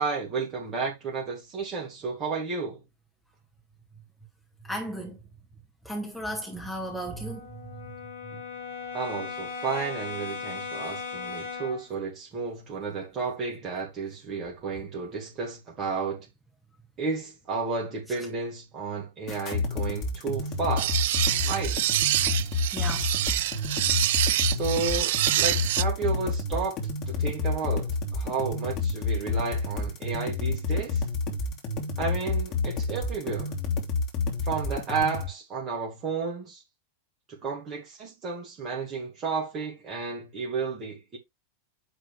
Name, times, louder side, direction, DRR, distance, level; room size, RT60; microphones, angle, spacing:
voice 1, 0.0-2.8 8.9-16.3 17.0-21.0 21.4-21.8 24.4-26.8 27.1-31.0 32.0-33.5 34.4-36.6 37.3-41.2, right 4 dB, 30° right, 3.2 m, -32 dB
voice 2, 4.7-5.2 5.9-7.4 22.7-23.0, right 1 dB, ahead, 2.6 m, -34 dB
Brass instrument, 6.4-11.9, left 5 dB, 70° left, 2.5 m, -38 dB
sound 1, 19.3-35.3, left 3 dB, 35° left, 2.9 m, -29 dB
sound 2, 20.8-25.8, right 14 dB, 55° right, 0.4 m, -26 dB
9.7 x 4.4 x 3.6 m
figure-of-eight pair, 90°, 0 cm